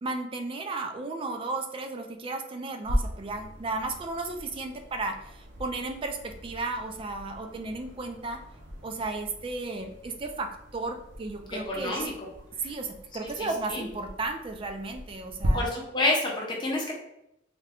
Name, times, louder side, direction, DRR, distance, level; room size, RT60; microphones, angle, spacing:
voice 1, 0.0-8.4 8.8-12.1 12.6-15.6, right 3 dB, 25° right, 5 dB, 0.3 m, -34 dB
sound 1, 2.8-15.5, equal, 70° right, 0.8 m, -39 dB
voice 2, 11.5-12.1 13.2-13.8 15.5-16.9, left 2 dB, 25° left, -2 dB, 0.8 m, -29 dB
3.6 x 2.2 x 3.4 m, 0.80 s
head